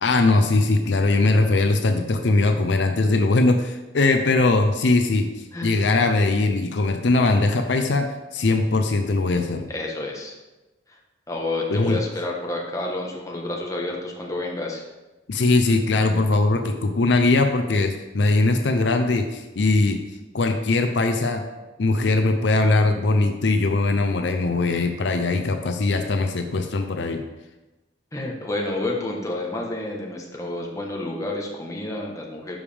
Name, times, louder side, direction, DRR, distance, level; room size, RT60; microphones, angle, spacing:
voice 1, 0.0-5.3 5.6-9.7 11.7-12.0 15.3-20.0 20.3-21.4 21.8-27.2, left 2 dB, 65° left, 5 dB, 0.6 m, -20 dB
voice 2, 9.7-10.4 10.9-11.0 11.3-14.8 28.1-32.6, left 2 dB, 15° left, -1 dB, 1.2 m, -29 dB
12.0 x 5.0 x 3.5 m, 1.1 s
head